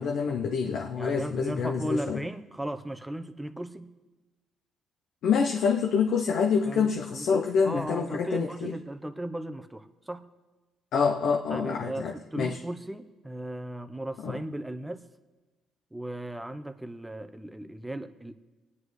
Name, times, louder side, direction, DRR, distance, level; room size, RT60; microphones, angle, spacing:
voice 1, 0.0-2.2 5.2-8.8 10.9-12.6 14.2-14.4, left 6 dB, 75° left, 2 dB, 0.7 m, -27 dB
voice 2, 1.0-3.9 6.7-10.2 11.5-15.0 15.9-18.3, right 1 dB, 10° right, 10 dB, 0.8 m, -36 dB
24.0 x 9.7 x 3.2 m, 1.2 s
cardioid pair, 90°, 0 cm